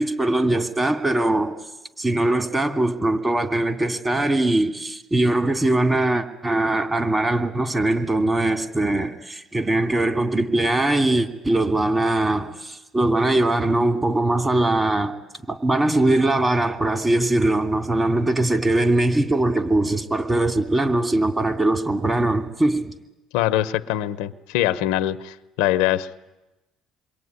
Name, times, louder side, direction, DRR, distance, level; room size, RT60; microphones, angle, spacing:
voice 1, 0.0-1.5 2.0-15.1 15.5-22.9, right 2 dB, 20° right, 2.9 m, -21 dB
voice 2, 23.3-26.2, left 13 dB, 85° left, 0.9 m, -23 dB
27.5 x 22.5 x 9.7 m
supercardioid pair, 80°, 0 cm